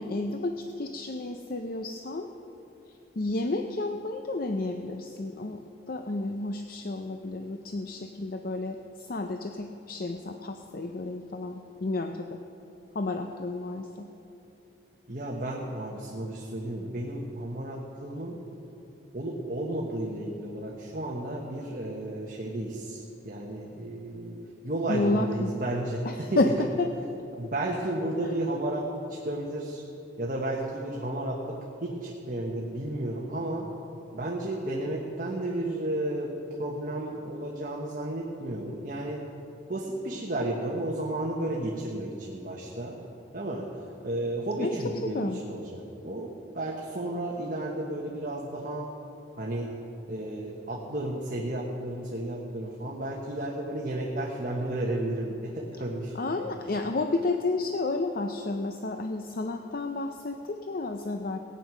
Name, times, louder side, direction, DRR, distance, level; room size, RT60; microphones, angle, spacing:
voice 1, 0.0-2.3 3.2-5.6 5.9-12.4 12.9-14.1 24.9-25.5 26.0-26.9 44.6-45.4 56.1-61.4, left 2 dB, 50° left, 5 dB, 0.6 m, -31 dB
voice 2, 15.1-18.4 19.1-24.4 24.6-26.5 27.4-29.8 30.2-33.7 34.1-36.3 36.6-39.2 39.7-43.0 43.3-43.7 44.0-48.9 49.4-49.8 50.1-56.5, right 1 dB, 45° right, -2 dB, 1.3 m, -33 dB
17.5 x 9.2 x 6.1 m, 2.8 s
head